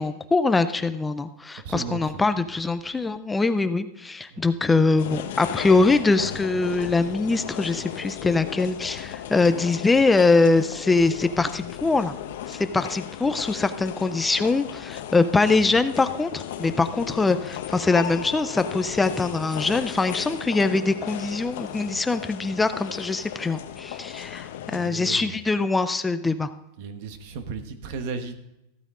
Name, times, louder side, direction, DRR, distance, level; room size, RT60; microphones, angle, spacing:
voice 1, 0.0-12.1 12.5-26.5, left 3 dB, 5° left, 11 dB, 0.4 m, -23 dB
voice 2, 1.6-2.3 4.3-4.4 24.5-25.5 26.8-28.4, right 5 dB, 50° right, 9 dB, 1.2 m, -35 dB
sound 1, 5.0-24.9, left 10 dB, 65° left, 0.9 m, -36 dB
14.5 x 9.0 x 3.7 m, 0.89 s
supercardioid pair, 170°, 0 cm